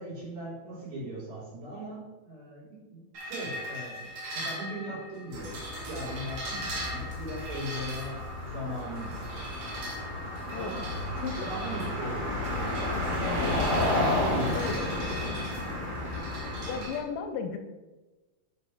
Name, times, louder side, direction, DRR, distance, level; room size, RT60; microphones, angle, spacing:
voice 1, 0.0-3.9 4.3-5.6 5.8-8.2 8.5-9.4 10.5-10.8 11.4-13.5 14.0-15.4, right 1 dB, 75° right, -7 dB, 5.0 m, -39 dB
sound 1, 3.1-17.0, equal, 55° right, 2.5 m, -41 dB
sound 2, 5.3-16.9, left 1 dB, 20° right, 1.6 m, -32 dB
voice 2, 16.7-17.6, left 6 dB, 80° left, 7 dB, 2.0 m, -34 dB
9.9 x 4.2 x 4.9 m, 1.2 s
omnidirectional pair, 4.2 m